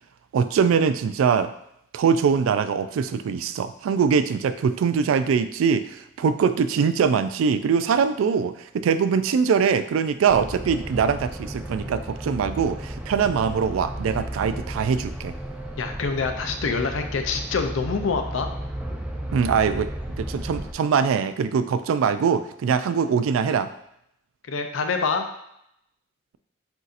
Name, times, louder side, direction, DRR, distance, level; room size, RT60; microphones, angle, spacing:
voice 1, 0.3-1.5 1.9-15.3 19.3-19.9 20.2-23.7, right 6 dB, 85° right, 12 dB, 0.3 m, -22 dB
sound 1, 10.3-20.7, right 1 dB, 5° right, 0.3 m, -34 dB
voice 2, 15.8-18.5 24.5-25.3, left 4 dB, 75° left, 6 dB, 0.5 m, -26 dB
7.9 x 2.7 x 2.5 m, 0.78 s
head